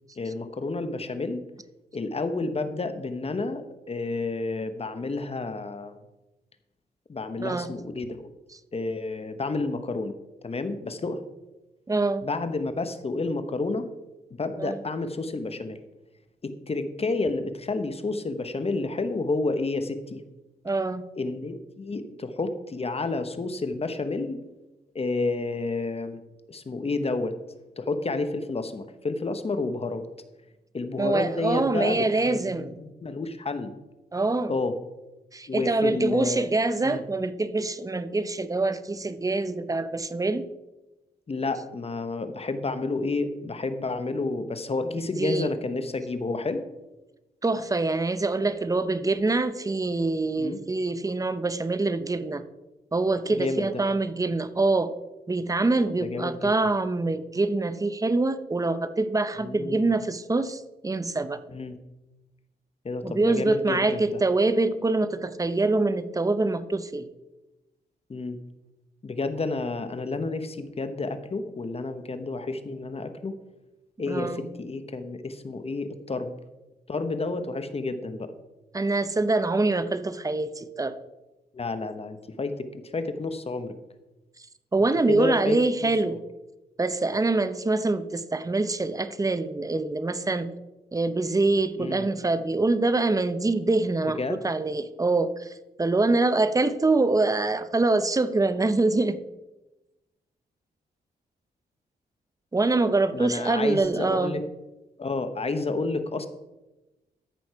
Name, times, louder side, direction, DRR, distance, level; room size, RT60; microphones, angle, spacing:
voice 1, 0.2-1.4 1.9-6.0 7.1-8.3 8.7-10.1 10.4-11.2 12.2-13.9 14.4-15.8 16.4-20.2 21.2-24.4 24.9-26.2 26.5-27.3 27.8-30.1 30.7-33.7 34.5-34.7 35.5-36.5 36.8-37.0 41.3-46.6 50.4-50.6 53.3-53.8 56.0-56.5 59.4-59.9 61.5-61.8 62.8-64.2 68.1-68.4 69.0-73.4 74.0-76.3 76.9-78.3 81.5-83.7 85.1-85.6 91.8-92.1 94.2-94.4 103.1-104.4 105.0-106.3, left 3 dB, 35° left, 9 dB, 1.0 m, -30 dB
voice 2, 7.4-7.7 11.9-12.3 14.6-14.8 20.6-21.1 31.0-32.7 34.1-34.5 35.3-40.5 45.2-45.5 47.4-52.4 52.9-54.9 55.3-61.4 63.0-67.1 74.1-74.5 78.7-81.0 84.7-86.2 86.8-90.5 90.9-99.2 102.5-104.4, right 2 dB, 20° right, 12 dB, 0.8 m, -25 dB
13.5 x 6.3 x 4.7 m, 1.0 s
cardioid pair, 80°, 17 cm